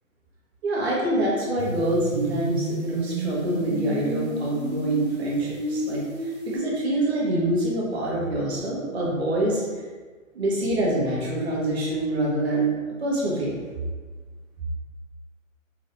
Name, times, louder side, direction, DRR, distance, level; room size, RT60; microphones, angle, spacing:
voice 1, 0.6-9.6 10.3-13.7, right 1 dB, 50° right, -4 dB, 1.3 m, -25 dB
sound 1, 1.6-6.6, right 2 dB, 30° right, 0.7 m, -31 dB
4.2 x 3.1 x 2.6 m, 1.4 s
figure-of-eight pair, 130°, 40 cm